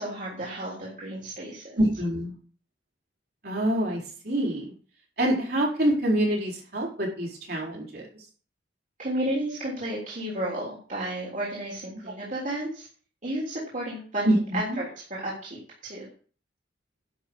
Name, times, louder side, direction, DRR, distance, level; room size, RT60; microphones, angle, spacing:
voice 1, 0.0-1.7 9.0-12.9 13.2-14.3 14.5-16.1, right 1 dB, 45° right, -5 dB, 3.4 m, -32 dB
voice 2, 1.8-2.3 3.4-4.7 5.2-8.2 14.2-14.8, right 1 dB, 60° right, -2 dB, 4.6 m, -26 dB
11.0 x 5.7 x 7.0 m, 0.42 s
head